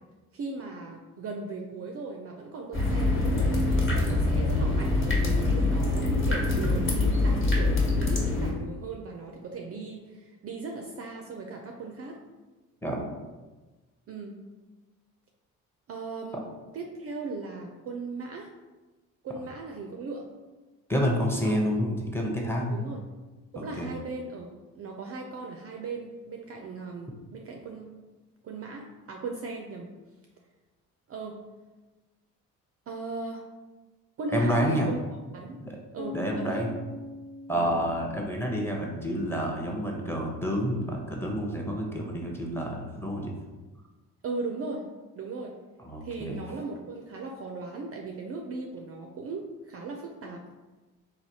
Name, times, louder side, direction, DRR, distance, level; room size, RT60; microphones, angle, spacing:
voice 1, 0.3-12.2 14.1-14.4 15.9-18.5 19.2-20.3 21.4-21.8 22.7-23.0 23.5-27.9 28.4-29.9 31.1-31.4 32.9-33.4 34.2-35.0 35.3-35.6 35.9-36.7 37.5-37.7 44.2-44.9 45.2-45.5 46.0-50.4, right 3 dB, 35° right, 1 dB, 0.4 m, -38 dB
sound 1, 2.7-8.5, left 2 dB, 30° left, 1.1 m, -24 dB
voice 2, 20.9-22.9 23.6-23.9 34.3-34.9 35.6-35.8 36.1-36.7 37.5-43.3 45.8-46.4, equal, 5° left, -1 dB, 0.6 m, -29 dB
sound 2, 36.0-39.9, left 3 dB, 70° left, 0.6 m, -42 dB
3.2 x 2.3 x 2.7 m, 1.2 s
hypercardioid pair, 55°, 42 cm